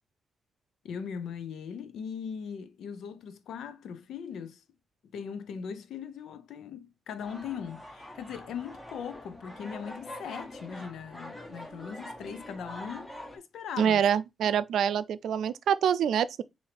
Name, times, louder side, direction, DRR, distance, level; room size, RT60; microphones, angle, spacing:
voice 1, 0.8-4.6 5.1-14.0, left 7 dB, 90° left, 0.5 m, -39 dB
sound 1, 7.2-13.4, left 1 dB, 10° left, 0.8 m, -44 dB
voice 2, 13.8-16.4, right 8 dB, 80° right, 0.3 m, -26 dB
5.5 x 2.6 x 3.4 m
wide cardioid pair, 145°, 0 cm